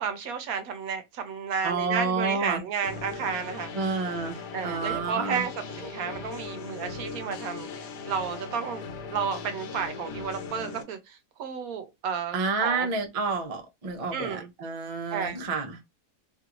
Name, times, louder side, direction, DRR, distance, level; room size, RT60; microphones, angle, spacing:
voice 1, 0.0-3.7 4.5-7.7 8.1-8.8 9.1-12.9 14.1-14.5 15.1-15.4, right 6 dB, 70° right, 1.0 m, -32 dB
voice 2, 1.6-2.6 3.7-5.4 12.3-15.8, right 4 dB, 50° right, 0.4 m, -29 dB
sound 1, 2.8-10.8, left 5 dB, 85° left, 1.2 m, -39 dB
2.9 x 2.5 x 2.9 m
omnidirectional pair, 1.7 m